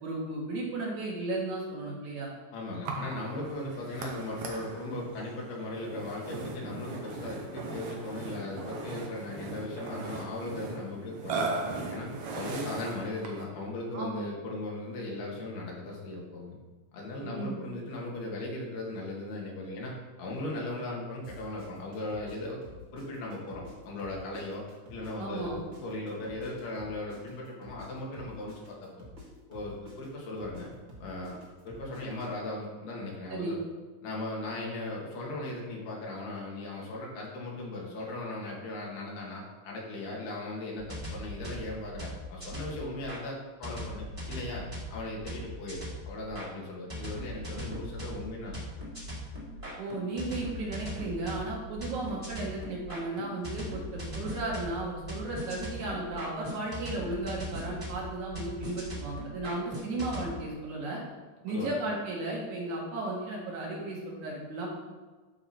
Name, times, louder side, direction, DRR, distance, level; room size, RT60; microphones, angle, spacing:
voice 1, 0.0-2.3 13.9-14.2 17.2-17.6 25.2-25.6 33.3-33.6 49.8-61.0 61.4-64.7, right 2 dB, 60° right, -3 dB, 2.7 m, -35 dB
voice 2, 2.5-16.6 16.9-19.9 20.2-22.6 22.9-24.7 24.9-25.6 25.8-29.1 29.5-30.7 31.0-31.4 31.7-33.6 34.0-44.7 44.9-48.9 61.5-61.7, left 2 dB, 90° left, -2 dB, 3.8 m, -38 dB
Burping eructation, 2.8-13.5, right 3 dB, 85° right, 1.3 m, -38 dB
sound 1, 21.2-23.7 24.0-27.9 28.1-32.3, left 1 dB, 35° right, 1.3 m, -49 dB
sound 2, 40.8-43.2 43.6-46.5 46.9-60.3, equal, 15° right, 1.3 m, -40 dB
12.5 x 4.8 x 4.4 m, 1.3 s
omnidirectional pair, 4.3 m